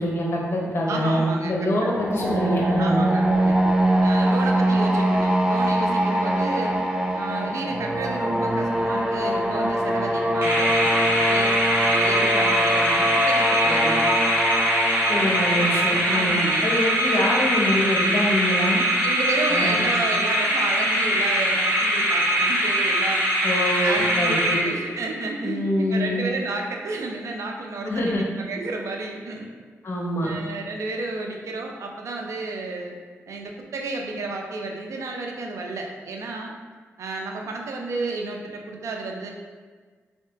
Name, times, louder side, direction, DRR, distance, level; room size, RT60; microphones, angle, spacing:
voice 1, 0.0-3.1 15.1-18.8 19.5-19.9 23.4-24.6 25.4-26.2 27.8-28.3 29.8-30.3, left 1 dB, 50° left, -2 dB, 0.9 m, -25 dB
voice 2, 0.9-1.7 2.8-3.6 4.0-6.8 7.1-11.5 11.9-14.1 16.1-16.6 19.0-23.2 23.5-29.5 30.2-33.0 33.3-36.5 37.0-39.3, right 3 dB, 75° right, 1 dB, 0.5 m, -31 dB
sound 1, 1.8-17.6, right 1 dB, 15° right, 0.5 m, -23 dB
sound 2, 10.4-25.1, equal, 55° right, 1.4 m, -22 dB
3.3 x 2.8 x 3.3 m, 1.5 s
cardioid pair, 70°, 5 cm